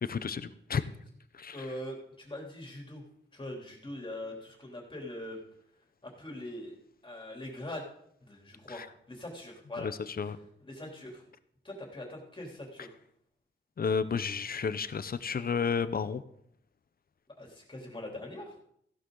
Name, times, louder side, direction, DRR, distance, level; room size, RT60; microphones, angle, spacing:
voice 1, 0.0-0.9 1.3-1.7 8.7-8.9 9.8-10.4 13.8-16.2, left 6 dB, 50° left, 13 dB, 0.8 m, -32 dB
voice 2, 1.5-3.0 3.3-5.4 6.0-6.8 7.0-7.8 8.2-9.9 10.6-11.2 11.6-13.0 17.4-18.6, left 1 dB, 25° left, 0 dB, 3.5 m, -42 dB
15.5 x 11.5 x 3.9 m, 0.69 s
wide cardioid pair, 110°, 20 cm